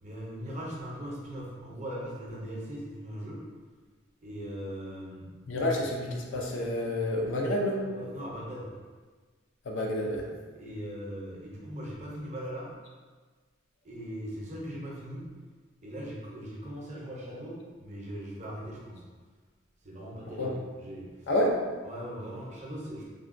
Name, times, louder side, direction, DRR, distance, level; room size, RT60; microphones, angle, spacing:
voice 1, 0.0-3.4 4.2-5.3 5.8-5.9 7.9-8.7 10.5-12.7 13.8-15.3 15.8-19.0 19.8-21.3 21.8-23.1, equal, 35° right, -4 dB, 0.6 m, -40 dB
voice 2, 5.5-7.8 9.6-10.3 20.3-20.5 21.3-21.6, left 1 dB, 75° left, 0 dB, 0.4 m, -29 dB
3.3 x 2.2 x 2.5 m, 1.4 s
head